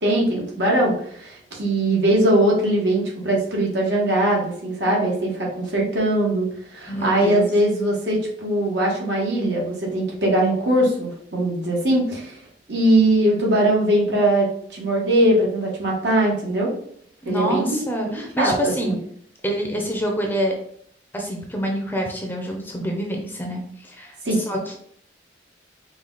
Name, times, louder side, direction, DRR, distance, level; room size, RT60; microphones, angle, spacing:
voice 1, 0.0-12.4 12.7-16.7 17.2-18.5 18.8-19.0 24.2-24.4, right 1 dB, 75° right, -3 dB, 1.6 m, -21 dB
voice 2, 6.9-7.5 17.2-19.0 19.4-20.5 21.1-24.8, equal, 10° left, 1 dB, 0.6 m, -26 dB
5.0 x 2.4 x 3.9 m, 0.64 s
head